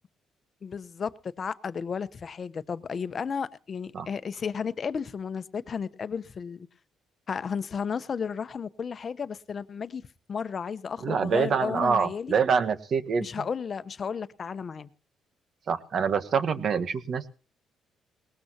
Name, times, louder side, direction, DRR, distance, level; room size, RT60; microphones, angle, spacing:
voice 1, 0.6-6.7 7.3-12.3 13.2-14.9, left 6 dB, 45° left, 0.9 m, -33 dB
voice 2, 11.0-13.3 15.7-17.3, right 6 dB, 55° right, 1.3 m, -25 dB
19.5 x 19.0 x 2.9 m
cardioid pair, 90°, 0 cm